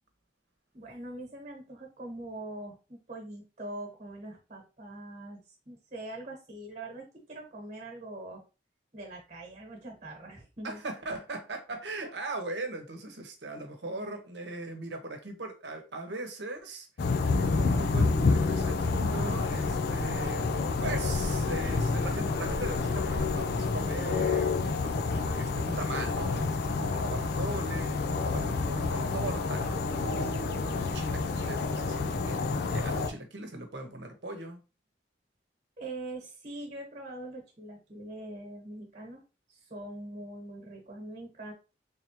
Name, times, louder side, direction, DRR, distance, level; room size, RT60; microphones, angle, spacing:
voice 1, 0.7-8.4 8.9-10.8 35.8-39.2 39.5-41.5, right 1 dB, 40° right, 1 dB, 1.3 m, -43 dB
voice 2, 10.6-16.9 17.3-34.6, right 2 dB, 75° right, 4 dB, 1.0 m, -39 dB
sound 1, 17.0-33.1, left 4 dB, 60° left, 0.4 m, -29 dB
3.5 x 3.3 x 2.9 m, 0.31 s
head